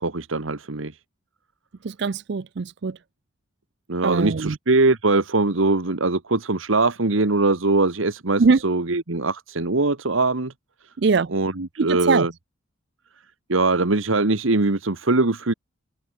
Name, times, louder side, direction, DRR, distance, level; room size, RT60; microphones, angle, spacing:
voice 1, 0.0-0.9 3.9-10.5 11.3-12.3 13.5-15.5, right 3 dB, 80° right, 1.5 m, -22 dB
voice 2, 1.8-3.0 4.0-4.6 8.4-8.6 11.0-11.3 11.8-12.3, right 4 dB, 55° right, 0.5 m, -21 dB
head